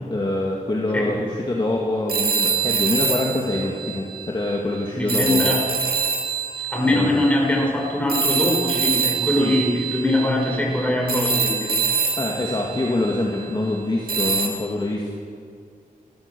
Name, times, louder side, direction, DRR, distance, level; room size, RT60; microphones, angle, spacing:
voice 1, 0.1-5.5 6.9-7.3 9.4-9.5 12.2-15.2, left 2 dB, 30° left, -2 dB, 2.3 m, -25 dB
sound 1, 2.1-4.6 5.1-13.6 14.1-14.5, right 5 dB, 85° right, 2.2 m, -25 dB
voice 2, 4.9-5.7 6.7-11.8, left 1 dB, 10° left, -1 dB, 5.3 m, -22 dB
28.0 x 14.0 x 7.0 m, 2.2 s
wide cardioid pair, 110°, 15 cm